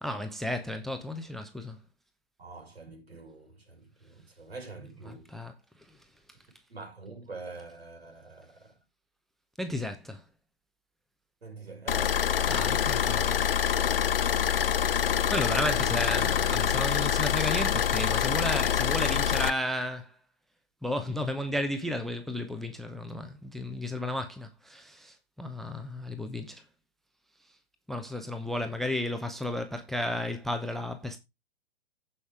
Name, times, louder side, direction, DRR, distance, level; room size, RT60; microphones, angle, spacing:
voice 1, 0.0-1.8 5.1-5.5 5.8-6.0 9.6-10.2 12.5-13.5 15.3-20.2 20.8-26.6 27.9-31.2, left 1 dB, ahead, 0.7 m, -33 dB
voice 2, 2.4-5.3 6.7-8.8 11.4-12.3 15.2-16.1, right 3 dB, 75° right, 5.5 m, -45 dB
sound 1, 11.9-19.5, left 9 dB, 65° left, 1.0 m, -26 dB
15.5 x 5.6 x 3.4 m
figure-of-eight pair, 115°, 31 cm